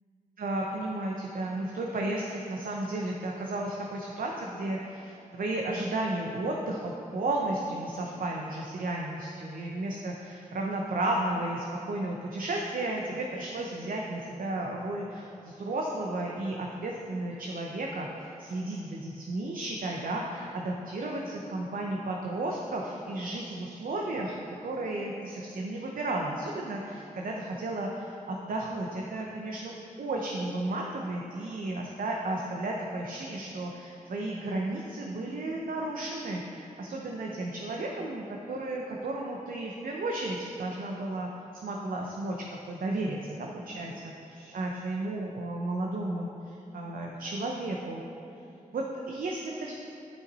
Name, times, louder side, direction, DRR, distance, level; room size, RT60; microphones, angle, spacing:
voice 1, 0.4-41.3 41.6-48.0 48.7-49.8, right 2 dB, 70° right, 0 dB, 0.7 m, -33 dB
9.7 x 5.7 x 4.1 m, 2.8 s
cardioid pair, 45°, 15 cm